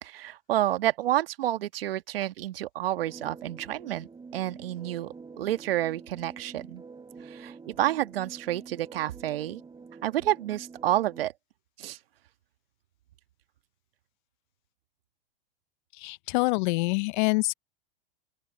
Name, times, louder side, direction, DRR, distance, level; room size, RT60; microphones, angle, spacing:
voice 1, 0.0-6.8 7.3-9.6 10.0-11.3 11.8-12.0, right 13 dB, 75° right, 1.6 m, -29 dB
sound 1, 3.0-11.3, right 4 dB, 15° right, 4.7 m, -47 dB
voice 2, 16.0-17.5, left 27 dB, 55° left, 0.6 m, -26 dB
open air
hypercardioid pair, 105°, 29 cm